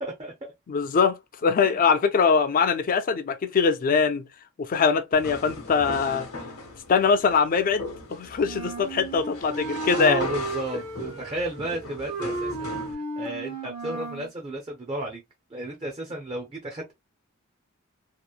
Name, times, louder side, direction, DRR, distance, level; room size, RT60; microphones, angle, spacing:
voice 1, 0.0-0.5 1.6-1.8 9.9-15.2 15.5-16.9, right 1 dB, 25° right, 0.5 m, -33 dB
voice 2, 0.7-1.2 1.4-4.2 4.6-6.3 6.9-10.2, left 5 dB, 40° left, 0.4 m, -22 dB
sound 1, 5.1-12.9, left 2 dB, 75° left, 0.9 m, -39 dB
Wind instrument woodwind instrument, 8.4-14.3, right 3 dB, 60° right, 1.0 m, -34 dB
2.8 x 2.0 x 2.3 m
head